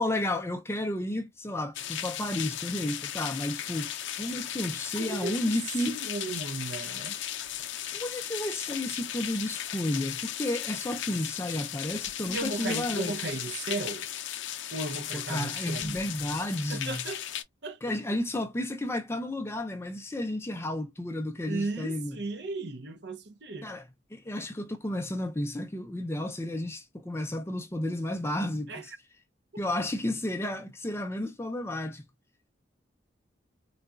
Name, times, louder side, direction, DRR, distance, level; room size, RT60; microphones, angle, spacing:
voice 1, 0.0-3.9 4.2-6.0 7.9-13.1 15.0-17.0 17.8-22.2 23.6-23.8 24.1-28.9 29.6-32.0, left 1 dB, 15° left, 0.4 m, -32 dB
sound 1, 1.7-17.4, left 11 dB, 70° left, 0.5 m, -36 dB
voice 2, 4.9-7.2 12.2-14.1 14.7-16.0 16.7-17.2 17.6-17.8 21.5-23.7 28.7-29.0, right 3 dB, 55° right, 0.7 m, -35 dB
3.9 x 2.3 x 2.3 m
head